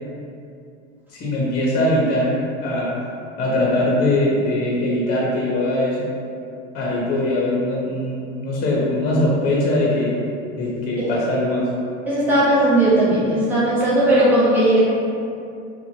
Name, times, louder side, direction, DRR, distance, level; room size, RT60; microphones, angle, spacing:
voice 1, 1.1-3.0 3.4-6.1 6.7-10.2 10.6-11.6, left 1 dB, 25° left, -5 dB, 0.5 m, -21 dB
voice 2, 12.1-14.8, right 1 dB, 5° right, -11 dB, 0.9 m, -17 dB
2.9 x 2.1 x 2.6 m, 2.5 s
hypercardioid pair, 95°, 35 cm